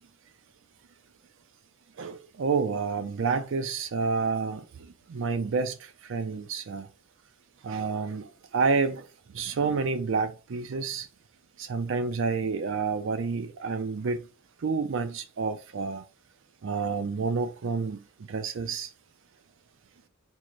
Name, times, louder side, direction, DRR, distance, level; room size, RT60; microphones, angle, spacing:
voice 1, 2.0-4.6 5.1-5.8 6.0-6.9 7.6-9.0 9.3-11.1 11.6-14.3 14.6-16.0 16.6-18.0 18.3-18.9, right 4 dB, 60° right, 0.4 m, -29 dB
4.6 x 2.1 x 3.8 m
head